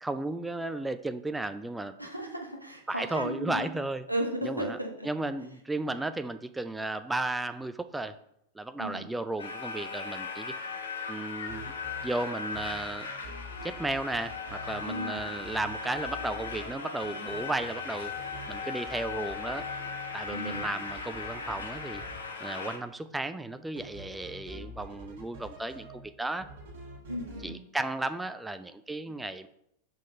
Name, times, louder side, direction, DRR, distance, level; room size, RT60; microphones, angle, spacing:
voice 1, 0.0-1.9 2.9-4.0 4.4-4.8 5.0-8.1 8.5-10.5 11.1-11.7 12.0-13.1 13.6-18.1 18.5-19.6 20.1-22.0 22.4-26.5 27.4-29.5, right 2 dB, 5° right, 10 dB, 0.3 m, -34 dB
voice 2, 2.0-3.7 4.1-5.1 8.8-9.1 14.8-15.2 20.3-20.7 27.1-27.6, right 1 dB, 90° right, 2 dB, 1.0 m, -35 dB
sound 1, 9.4-22.8, left 5 dB, 70° left, 0.8 m, -38 dB
sound 2, 11.5-12.3 12.5-14.8 15.2-16.7 17.0-22.2 23.8-26.1 26.4-27.5, right 1 dB, 60° right, 1.6 m, -46 dB
5.2 x 3.7 x 5.1 m, 0.76 s
figure-of-eight pair, 90°, 0 cm